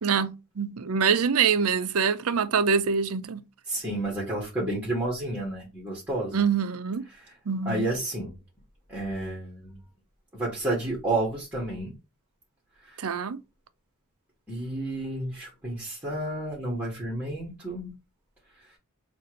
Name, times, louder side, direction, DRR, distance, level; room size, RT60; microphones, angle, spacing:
voice 1, 0.0-3.4 6.3-7.0 7.5-7.9 13.0-13.4, right 6 dB, 70° right, 0.6 m, -25 dB
voice 2, 3.7-6.4 7.6-8.3 8.9-9.8 10.3-11.9 12.9-13.0 14.5-17.9, right 2 dB, 5° right, 1.6 m, -31 dB
6.6 x 2.6 x 3.1 m
head